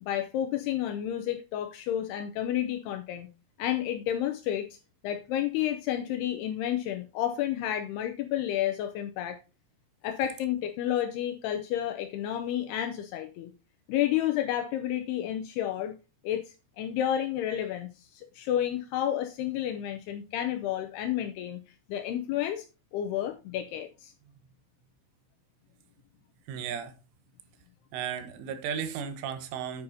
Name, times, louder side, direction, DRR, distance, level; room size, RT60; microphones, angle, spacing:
voice 1, 0.0-3.3 3.6-4.8 5.0-9.4 10.0-13.5 13.9-15.9 16.2-16.4 16.8-21.6 21.9-22.7 22.9-24.1, left 11 dB, 90° left, 2.3 m, -30 dB
voice 2, 26.5-27.0 27.9-29.8, right 8 dB, 85° right, 3.6 m, -35 dB
9.5 x 9.4 x 2.7 m
omnidirectional pair, 5.5 m